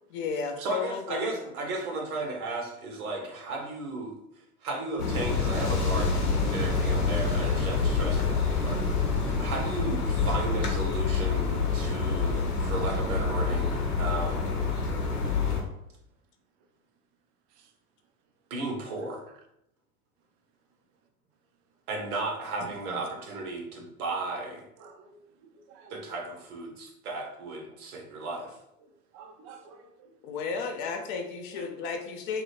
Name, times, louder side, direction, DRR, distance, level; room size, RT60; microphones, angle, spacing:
voice 1, 0.1-1.3 30.2-32.4, left 5 dB, 35° left, 4 dB, 0.4 m, -33 dB
voice 2, 0.6-14.5 18.5-19.2 21.9-24.6 25.9-28.6, right 2 dB, 70° right, 1 dB, 1.0 m, -35 dB
sound 1, 5.0-15.6, left 4 dB, 85° left, 0.7 m, -27 dB
voice 3, 24.8-25.2 25.7-26.0 29.1-30.1 31.5-31.7, right 5 dB, 35° right, 6 dB, 0.4 m, -49 dB
2.7 x 2.7 x 2.8 m, 0.81 s
figure-of-eight pair, 85°, 45 cm